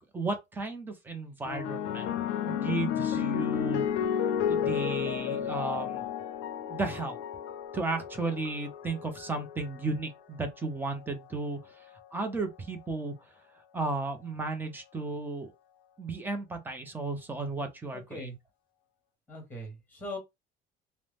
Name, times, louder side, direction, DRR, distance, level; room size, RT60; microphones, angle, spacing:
voice 1, 0.1-2.2 2.4-3.8 4.5-6.0 6.7-7.2 7.7-11.6 12.1-13.1 13.7-15.5 16.0-18.3, right 3 dB, 10° right, 0.5 m, -34 dB
sound 1, 1.4-10.0 10.9-11.3, left 9 dB, 65° left, 0.5 m, -32 dB
voice 2, 17.9-18.4 19.3-20.2, left 1 dB, 10° left, 1.3 m, -40 dB
2.6 x 2.0 x 3.3 m
cardioid pair, 155°, 20 cm